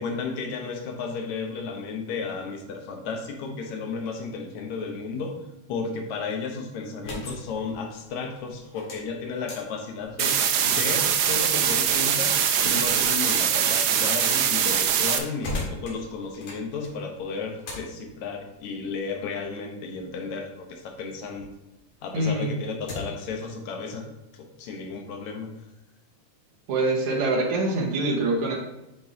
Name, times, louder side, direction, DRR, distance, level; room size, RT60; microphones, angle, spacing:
voice 1, 0.0-5.3 5.7-10.4 10.6-21.5 22.0-24.1 24.3-25.5, left 4 dB, 75° left, 2 dB, 2.2 m, -33 dB
sound 1, 7.0-21.5 21.9-23.3, left 2 dB, 90° left, 3.2 m, -42 dB
sound 2, 10.2-15.2, right 8 dB, 75° right, 1.8 m, -22 dB
voice 2, 22.1-22.6 26.7-28.6, right 2 dB, 55° right, -2 dB, 2.1 m, -24 dB
9.0 x 5.4 x 2.8 m, 0.94 s
omnidirectional pair, 3.4 m